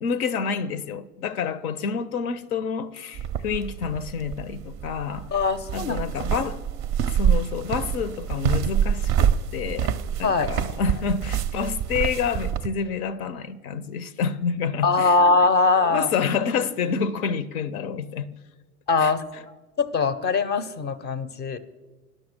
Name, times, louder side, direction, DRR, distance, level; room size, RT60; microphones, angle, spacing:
voice 1, 0.0-5.4 5.7-6.6 7.1-15.2 15.8-18.3 19.0-19.1, left 6 dB, 70° left, 0.6 m, -28 dB
sound 1, 3.1-12.7, right 9 dB, 30° right, 0.4 m, -26 dB
voice 2, 5.3-6.0 10.2-10.5 14.8-16.1 18.9-19.3 19.8-21.6, left 4 dB, 25° left, 0.5 m, -21 dB
10.5 x 6.3 x 6.4 m
hypercardioid pair, 85°, 45 cm